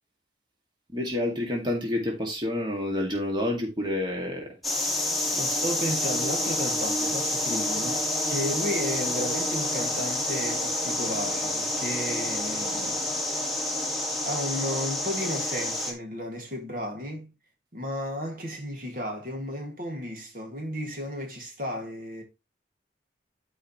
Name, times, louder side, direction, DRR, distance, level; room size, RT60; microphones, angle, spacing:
voice 1, 0.9-4.5, left 1 dB, 25° right, 2.1 m, -28 dB
sound 1, 4.6-15.9, left 1 dB, ahead, 1.8 m, -28 dB
voice 2, 5.3-13.0 14.2-17.3 17.7-22.2, equal, 50° right, 2.0 m, -33 dB
12.5 x 5.0 x 3.0 m
head